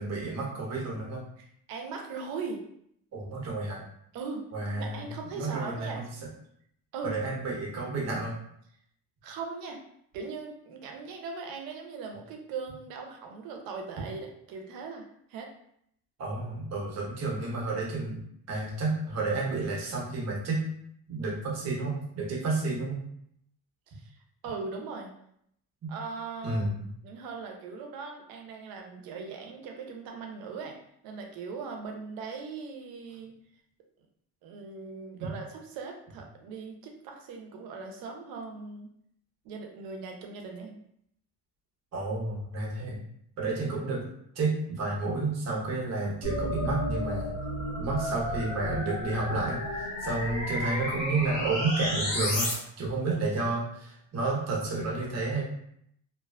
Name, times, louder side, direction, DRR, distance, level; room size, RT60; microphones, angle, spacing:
voice 1, 0.0-1.2 3.1-3.8 4.5-5.0 5.3-6.1 7.0-8.3 16.2-18.2 18.5-20.6 21.1-23.0 25.8-25.9 26.4-26.8 35.2-35.3 41.9-43.0 43.4-44.0 44.3-47.3 47.8-55.4, right 3 dB, 50° right, -3 dB, 1.0 m, -31 dB
voice 2, 1.4-2.6 4.1-6.0 6.9-7.2 9.2-9.8 10.1-15.0 15.3-15.5 23.9-24.1 24.4-25.1 25.9-26.6 27.0-30.8 31.0-33.3 34.4-38.9 39.4-40.8, right 4 dB, 90° right, 2 dB, 0.6 m, -39 dB
sound 1, 46.2-52.5, left 1 dB, 60° left, 1.2 m, -32 dB
2.4 x 2.3 x 2.3 m, 0.71 s
cardioid pair, 95°, 34 cm